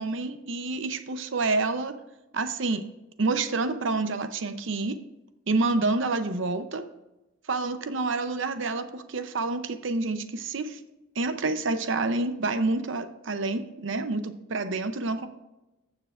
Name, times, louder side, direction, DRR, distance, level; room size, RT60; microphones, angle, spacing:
voice 1, 0.0-1.9 2.3-2.8 3.2-5.0 5.5-6.8 7.5-10.8 11.2-15.3, right 3 dB, 65° right, 9 dB, 0.7 m, -28 dB
14.0 x 7.4 x 2.5 m, 0.98 s
head